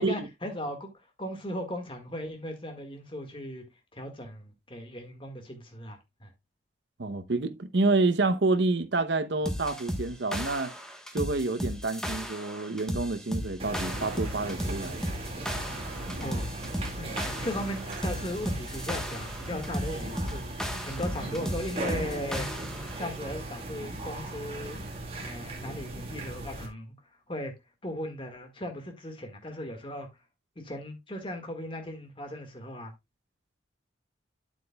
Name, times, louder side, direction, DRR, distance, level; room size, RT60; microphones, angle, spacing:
voice 1, 0.0-3.6 3.9-6.3 16.2-16.5 17.0-22.5 23.0-24.8 25.1-26.9 27.3-27.5 27.8-30.1 30.6-32.9, left 1 dB, 25° left, 1.8 m, -37 dB
voice 2, 7.0-10.7 11.1-15.0, right 3 dB, 65° right, 0.8 m, -28 dB
sound 1, 9.4-23.0, equal, 5° left, 1.2 m, -35 dB
sound 2, 13.6-26.7, right 2 dB, 30° right, 2.2 m, -37 dB
8.8 x 8.3 x 2.3 m
head